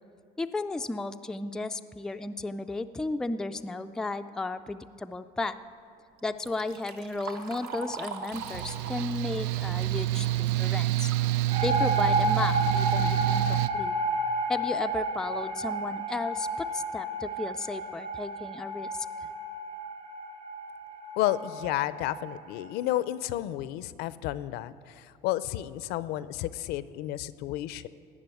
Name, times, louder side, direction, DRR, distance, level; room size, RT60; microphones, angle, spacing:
voice 1, 0.4-5.6 6.2-11.1 11.6-13.9 14.5-19.1, left 2 dB, 5° left, 8 dB, 0.3 m, -34 dB
Liquid, 6.2-11.3 11.7-11.8 12.7-12.8 13.2-13.5 14.2-14.3 14.8-14.9 15.3-15.5, right 4 dB, 70° right, 1.3 m, -42 dB
Mechanical fan, 8.3-13.7, right 15 dB, 90° right, 0.5 m, -28 dB
sound 1, 11.5-22.7, right 1 dB, 55° right, 2.9 m, -31 dB
voice 2, 21.2-27.9, left 14 dB, 75° left, 16 dB, 0.5 m, -31 dB
17.5 x 6.2 x 9.1 m, 2.4 s
cardioid pair, 140°, 17 cm